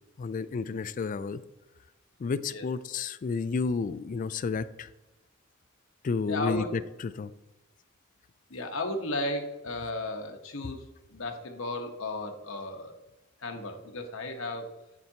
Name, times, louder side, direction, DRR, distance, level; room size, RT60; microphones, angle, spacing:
voice 1, 0.2-1.4 2.2-4.9 6.0-7.3, left 4 dB, 40° left, 14 dB, 0.3 m, -31 dB
voice 2, 6.3-6.7 8.5-10.8 11.1-13.0 13.4-14.8, left 2 dB, 90° left, 4 dB, 1.1 m, -34 dB
7.9 x 7.3 x 2.8 m, 1.0 s
head